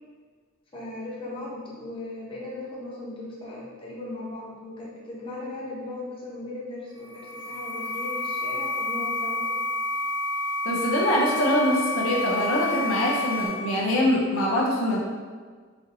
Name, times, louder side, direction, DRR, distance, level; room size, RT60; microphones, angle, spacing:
voice 1, 0.7-9.5, left 2 dB, 25° left, -6 dB, 0.9 m, -37 dB
sound 1, 7.0-13.5, left 1 dB, 20° right, 0.7 m, -29 dB
voice 2, 10.6-15.0, left 1 dB, 75° left, -3 dB, 0.5 m, -24 dB
4.1 x 2.7 x 2.6 m, 1.6 s
head